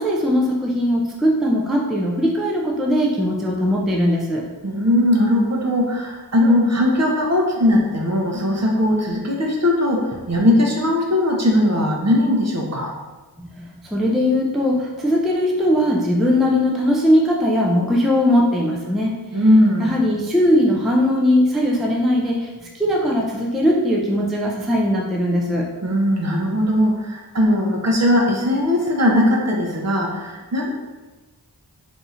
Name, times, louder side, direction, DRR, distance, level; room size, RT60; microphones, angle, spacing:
voice 1, 0.0-4.4 13.4-19.2 19.8-25.7, left 1 dB, ahead, -2 dB, 0.4 m, -19 dB
voice 2, 4.6-12.9 19.3-19.9 25.8-30.7, left 1 dB, 40° right, 0 dB, 0.6 m, -19 dB
2.7 x 2.4 x 4.2 m, 1.2 s
wide cardioid pair, 50°, 41 cm